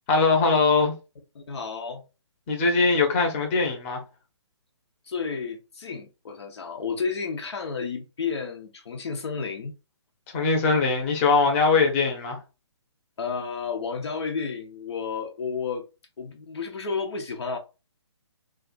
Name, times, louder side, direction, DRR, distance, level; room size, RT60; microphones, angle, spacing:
voice 1, 0.1-0.9 2.5-4.0 10.3-12.4, left 4 dB, 25° left, 0.9 m, -21 dB
voice 2, 1.3-2.0 5.1-9.7 13.2-15.8 16.2-17.6, left 5 dB, 65° left, 0.7 m, -31 dB
2.4 x 2.4 x 4.0 m
hypercardioid pair, 150°, 15 cm